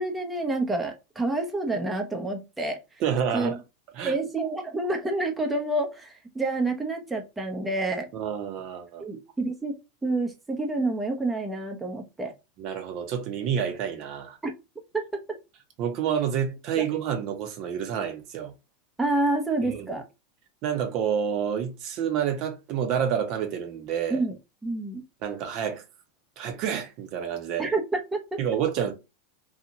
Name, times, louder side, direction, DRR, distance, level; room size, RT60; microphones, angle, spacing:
voice 1, 0.0-2.8 3.3-3.6 4.0-8.1 9.0-9.8 10.0-12.3 14.4-14.5 14.9-15.0 16.8-16.9 19.0-20.1 24.1-24.3 24.6-25.0 27.6-28.4, right 2 dB, 10° right, 0.7 m, -28 dB
voice 2, 3.0-3.6 4.0-4.1 8.1-9.0 12.6-14.4 15.8-18.5 19.6-19.9 20.6-24.2 25.2-25.8 26.4-27.7 28.4-28.9, right 8 dB, 55° right, 0.8 m, -28 dB
2.7 x 2.4 x 2.8 m
hypercardioid pair, 95°, 0 cm